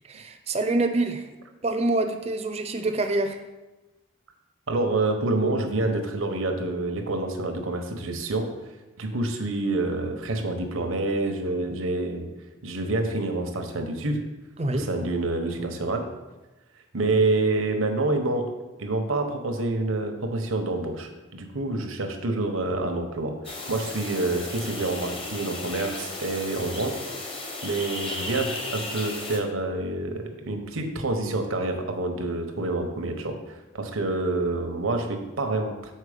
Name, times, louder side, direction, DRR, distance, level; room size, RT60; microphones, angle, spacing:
voice 1, 0.1-1.3 1.6-3.4 14.6-14.9, right 2 dB, 30° right, 7 dB, 0.5 m, -26 dB
voice 2, 4.7-8.5 9.0-12.3 12.6-14.2 14.7-16.1 16.9-18.5 18.8-27.0 27.6-35.9, right 2 dB, 85° right, 4 dB, 0.9 m, -27 dB
sound 1, 23.4-29.4, left 2 dB, 25° left, 0.8 m, -35 dB
6.5 x 4.4 x 5.0 m, 1.1 s
head